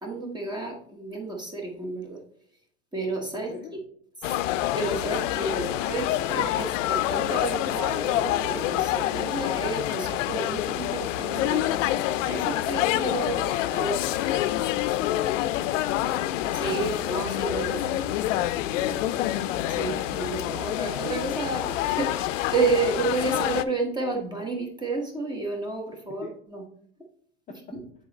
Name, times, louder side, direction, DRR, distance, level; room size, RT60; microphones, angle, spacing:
voice 1, 0.0-2.2 2.9-3.5 4.7-11.7 12.3-14.0 16.5-17.8 19.7-26.6 27.7-27.8, right 3 dB, 10° right, 2 dB, 1.1 m, -31 dB
voice 2, 3.3-3.7 14.2-16.2 18.7-19.2 26.2-26.3 27.5-27.6, left 6 dB, 20° left, 0 dB, 0.5 m, -42 dB
sound 1, 4.2-23.6, left 14 dB, 90° left, 0.5 m, -27 dB
sound 2, 6.1-20.4, right 3 dB, 60° right, 2.0 m, -49 dB
7.1 x 4.0 x 4.0 m, 0.64 s
supercardioid pair, 145°, 37 cm